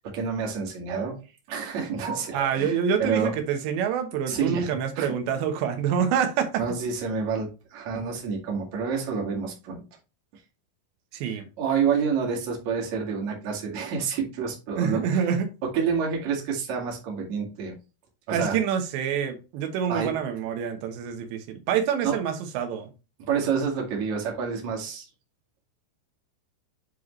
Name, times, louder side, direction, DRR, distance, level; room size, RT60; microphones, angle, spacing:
voice 1, 0.1-1.2 1.5-3.3 4.3-4.7 5.0-5.1 6.6-9.8 11.6-15.2 15.7-17.7 18.3-18.6 19.9-20.1 22.0-22.1 23.3-25.0, right 6 dB, 50° right, 3.0 m, -28 dB
voice 2, 2.3-6.6 11.1-11.4 14.8-15.5 18.3-22.9, right 7 dB, 90° right, 3.4 m, -26 dB
7.9 x 5.0 x 3.2 m
omnidirectional pair, 5.0 m